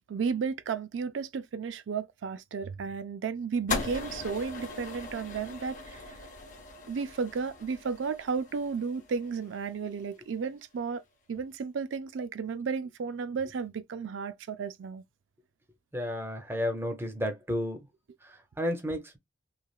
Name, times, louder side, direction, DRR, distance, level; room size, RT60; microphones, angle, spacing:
voice 1, 0.1-6.1 6.9-11.0 11.3-15.0, right 5 dB, 90° right, 0.4 m, -33 dB
sound 1, 3.7-10.0, left 3 dB, 45° left, 0.9 m, -39 dB
voice 2, 15.9-17.9 18.2-19.2, left 1 dB, 10° right, 0.6 m, -32 dB
3.2 x 2.3 x 2.3 m
head